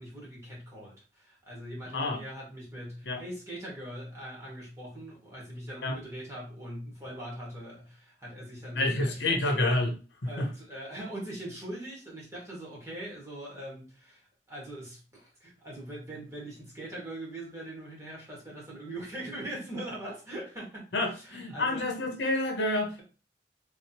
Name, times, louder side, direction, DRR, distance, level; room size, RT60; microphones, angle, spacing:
voice 1, 0.0-9.4 10.2-21.8, right 1 dB, 15° right, -5 dB, 1.8 m, -41 dB
voice 2, 8.7-10.0 10.4-10.5 20.9-23.0, left 2 dB, 75° left, 3 dB, 0.9 m, -28 dB
3.6 x 3.1 x 2.9 m, 0.34 s
head